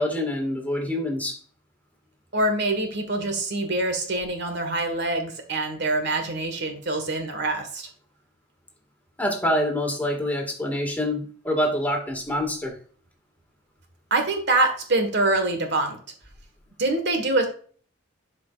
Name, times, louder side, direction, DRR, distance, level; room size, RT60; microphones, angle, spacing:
voice 1, 0.0-1.4 9.2-12.7, left 1 dB, 10° left, 1 dB, 1.9 m, -26 dB
voice 2, 2.3-7.9 14.1-16.0 16.8-17.5, right 2 dB, 60° right, 5 dB, 1.6 m, -25 dB
12.0 x 5.2 x 2.5 m, 0.44 s
head